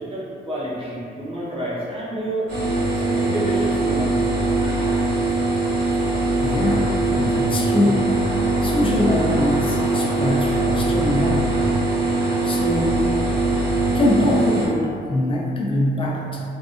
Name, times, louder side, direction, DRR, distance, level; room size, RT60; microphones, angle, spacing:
voice 1, 0.0-2.6 3.0-4.2, right 1 dB, 25° right, -8 dB, 0.8 m, -29 dB
sound 1, 2.5-14.7, right 2 dB, 55° right, 1.0 m, -21 dB
voice 2, 6.4-6.9 7.1-8.1 8.6-11.6 12.4-13.1 13.9-16.4, left 1 dB, 25° left, -2 dB, 0.5 m, -23 dB
2.6 x 2.4 x 2.4 m, 2.3 s
cardioid pair, 90°, 20 cm